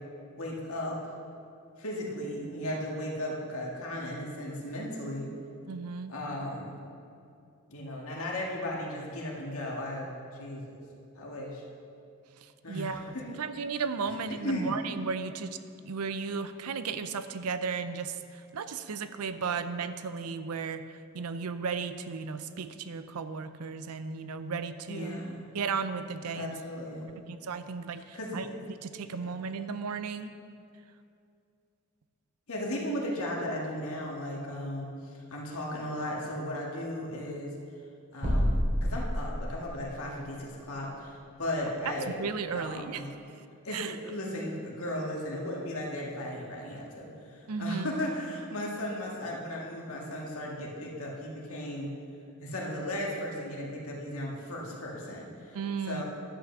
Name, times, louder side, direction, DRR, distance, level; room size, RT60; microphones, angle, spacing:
voice 1, 0.4-1.0 1.8-5.3 6.1-6.7 7.7-10.8 11.1-11.6 12.6-13.2 14.1-14.7 24.9-25.6 26.3-27.2 27.9-28.5 29.0-29.3 32.5-37.5 38.1-42.2 42.5-43.1 43.6-51.9 52.4-55.6 55.8-56.0, left 1 dB, 70° left, -2 dB, 1.9 m, -36 dB
voice 2, 5.7-6.1 12.7-15.6 15.9-20.8 21.1-25.1 25.5-26.6 27.3-30.3 42.2-43.0 43.7-43.9 47.5-47.9 55.5-56.0, right 5 dB, 85° right, 11 dB, 0.5 m, -35 dB
sound 1, 38.2-39.8, equal, 45° right, 2.7 m, -28 dB
11.0 x 5.9 x 6.7 m, 2.5 s
head